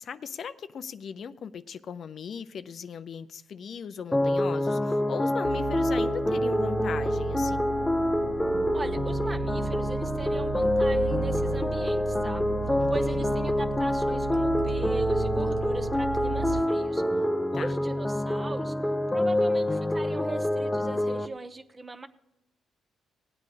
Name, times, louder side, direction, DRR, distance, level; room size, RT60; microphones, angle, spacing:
voice 1, 0.0-7.7 12.8-13.3 17.5-17.7, left 7 dB, 55° left, 13 dB, 0.5 m, -38 dB
sound 1, 4.1-21.3, left 1 dB, 10° left, 0.6 m, -26 dB
sound 2, 5.4-16.6, right 7 dB, 65° right, 0.6 m, -35 dB
voice 2, 8.7-12.5 12.9-17.0 17.5-18.7 19.1-22.1, right 2 dB, 25° right, 11 dB, 0.9 m, -39 dB
18.5 x 8.5 x 4.9 m, 0.88 s
cardioid pair, 90°, 0 cm